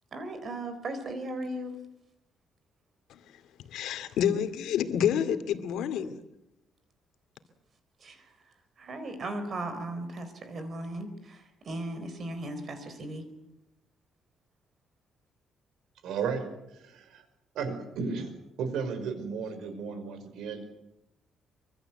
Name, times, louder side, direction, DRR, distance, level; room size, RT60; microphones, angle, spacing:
voice 1, 0.1-1.7 8.0-13.2, right 1 dB, 35° right, 4.1 m, -37 dB
voice 2, 3.7-6.1, left 9 dB, 90° left, 2.4 m, -28 dB
voice 3, 16.0-16.5 16.8-17.2 17.6-18.3 18.6-20.7, right 5 dB, 85° right, 5.4 m, -34 dB
25.0 x 24.0 x 8.0 m
cardioid pair, 165°, 0 cm